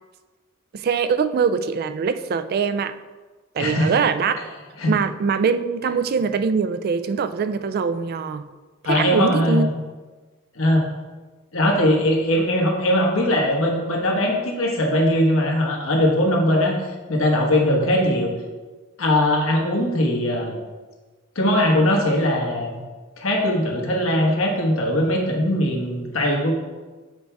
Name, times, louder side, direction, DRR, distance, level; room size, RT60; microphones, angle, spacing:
voice 1, 0.7-3.0 3.5-4.5 4.9-8.4 8.8-9.7, right 5 dB, 50° right, 11 dB, 0.3 m, -23 dB
voice 2, 3.6-3.9 4.8-4.9 8.8-9.7 10.6-10.9 11.5-16.8 17.1-18.3 19.0-20.6 21.3-22.8 23.2-26.5, left 1 dB, 85° left, 0 dB, 1.3 m, -20 dB
7.8 x 4.5 x 3.4 m, 1.3 s
head